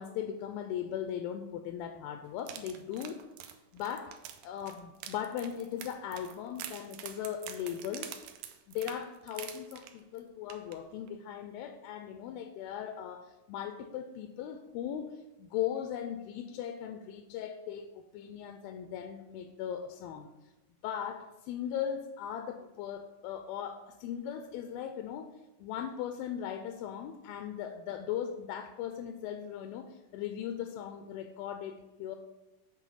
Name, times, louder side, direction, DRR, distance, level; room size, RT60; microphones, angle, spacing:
voice 1, 0.0-4.1 4.4-8.1 8.7-20.3 20.8-25.3 25.6-32.2, left 9 dB, 85° left, 7 dB, 2.3 m, -38 dB
sound 1, 2.4-10.2 10.5-10.8 11.1-11.2, right 10 dB, 85° right, 2.3 m, -46 dB
8.1 x 4.1 x 5.4 m, 1.0 s
omnidirectional pair, 4.2 m